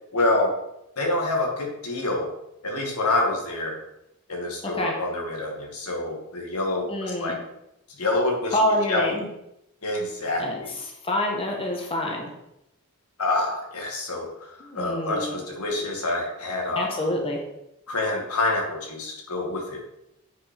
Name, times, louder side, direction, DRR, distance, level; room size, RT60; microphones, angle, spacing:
voice 1, 0.1-0.5 1.0-2.3 2.6-3.8 4.3-7.4 8.0-9.0 9.8-10.7 13.2-16.9 17.9-19.8, left 2 dB, 85° left, 1 dB, 2.0 m, -27 dB
voice 2, 6.9-7.4 8.5-9.3 10.4-10.6 11.0-12.3 14.6-15.3 16.7-17.4, left 1 dB, 25° left, 0 dB, 1.4 m, -26 dB
8.1 x 5.3 x 5.2 m, 0.85 s
head